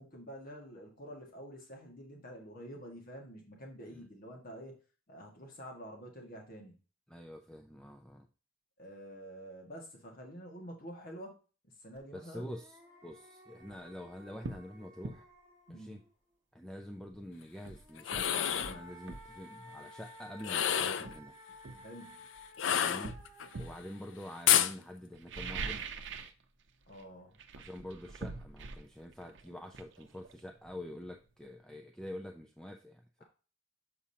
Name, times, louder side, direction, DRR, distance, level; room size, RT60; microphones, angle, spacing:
voice 1, 0.0-4.7 5.1-6.7 8.8-11.4 11.6-12.5 15.7-16.0 21.8-22.2 26.9-27.4, equal, 50° left, 1 dB, 1.5 m, -48 dB
voice 2, 7.1-8.3 12.1-15.2 15.7-16.0 16.5-21.3 22.7-23.1 23.6-25.8 27.6-33.2, left 1 dB, 5° left, 3 dB, 0.4 m, -46 dB
sound 1, 12.0-12.1 12.4-16.1 17.7-25.0, equal, 15° right, 1.6 m, -55 dB
sound 2, 13.6-13.8 14.4-14.7 15.0-15.2 17.1-17.2 17.7-19.3 20.4-20.5 21.0-22.4 23.0-23.8 25.1-26.4 26.7-27.0 27.3-30.9 31.2-31.3, right 4 dB, 65° right, 0.7 m, -43 dB
sound 3, 18.0-18.8 20.4-21.1 22.6-23.5 24.5-24.7, left 10 dB, 70° left, 0.4 m, -28 dB
7.0 x 5.1 x 2.7 m, 0.35 s
head